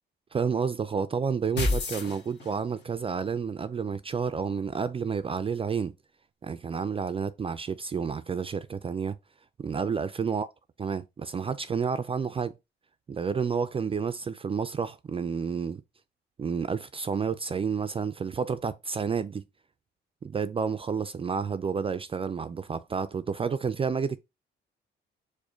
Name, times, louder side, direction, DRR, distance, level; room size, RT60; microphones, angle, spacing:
voice 1, 0.3-5.9 6.4-9.2 9.6-10.5 10.8-12.5 13.1-15.8 16.4-19.4 20.2-24.2, right 6 dB, 30° right, 0.3 m, -30 dB
sound 1, 1.6-2.8, left 2 dB, 60° left, 1.3 m, -29 dB
4.9 x 2.2 x 4.8 m
cardioid pair, 90°, 20 cm